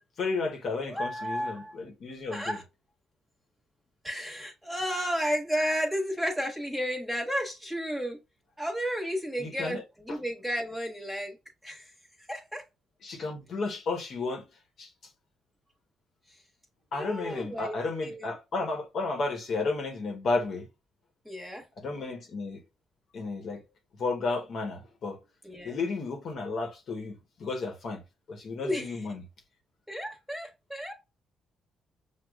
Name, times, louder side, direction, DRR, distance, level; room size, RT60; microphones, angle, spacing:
voice 1, 0.2-2.6 9.4-9.8 10.1-10.2 13.0-14.4 14.8-14.9 16.9-20.7 21.8-22.6 23.1-23.6 24.0-25.2 25.6-28.0 28.3-29.2, left 3 dB, 60° left, 1.1 m, -33 dB
voice 2, 0.9-1.8 2.3-2.6 4.0-8.2 8.6-11.4 11.6-11.9 12.3-12.6 16.9-18.3 21.2-21.6 25.4-25.8 28.6-29.0 29.9-30.9, equal, ahead, 1.4 m, -32 dB
6.3 x 2.3 x 2.3 m
cardioid pair, 90°, 0 cm